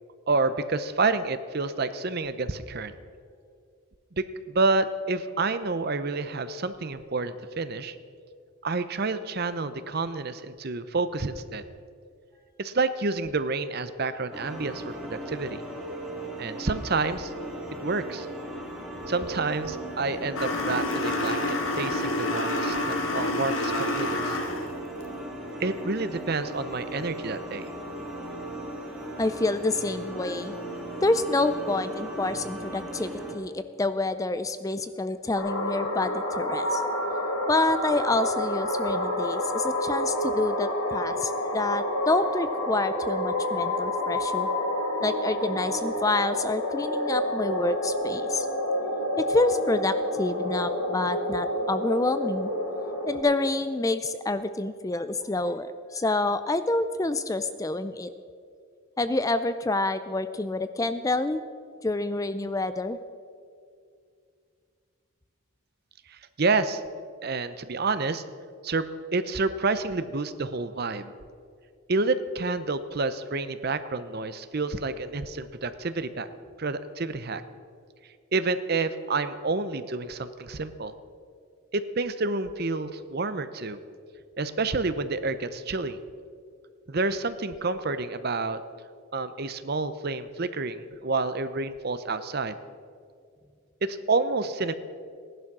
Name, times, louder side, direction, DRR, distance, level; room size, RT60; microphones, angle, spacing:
voice 1, 0.3-2.9 4.2-8.0 8.6-11.6 12.6-15.6 16.4-17.3 17.8-18.3 19.1-24.4 25.6-27.7 66.1-66.8 67.2-68.2 68.6-68.9 69.1-71.1 71.9-76.3 76.6-77.4 78.3-80.9 81.7-83.8 84.4-86.0 86.9-88.6 89.1-92.6 93.8-94.7, right 3 dB, 45° right, 12 dB, 0.7 m, -29 dB
sound 1, 14.3-33.3, right 1 dB, ahead, 2.2 m, -37 dB
sound 2, 20.4-24.8, left 1 dB, 65° left, 1.7 m, -28 dB
voice 2, 29.2-30.6 31.0-36.8 37.5-44.5 45.0-48.5 49.2-52.5 53.1-58.1 59.0-61.4 61.8-63.0, left 2 dB, 15° left, 11 dB, 0.4 m, -28 dB
sound 3, 35.4-53.2, left 1 dB, 85° left, 3.2 m, -29 dB
16.5 x 11.0 x 6.1 m, 2.3 s
head